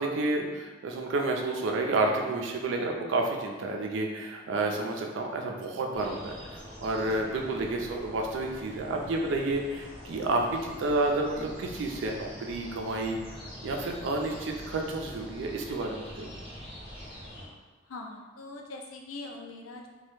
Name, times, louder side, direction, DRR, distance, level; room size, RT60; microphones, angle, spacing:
voice 1, 0.0-13.2 13.6-16.3, right 2 dB, 65° right, 1 dB, 0.3 m, -30 dB
sound 1, 5.9-17.5, equal, 30° left, 0.7 m, -45 dB
voice 2, 17.9-19.9, left 2 dB, 90° left, 1 dB, 0.4 m, -42 dB
2.2 x 2.0 x 3.0 m, 1.3 s
head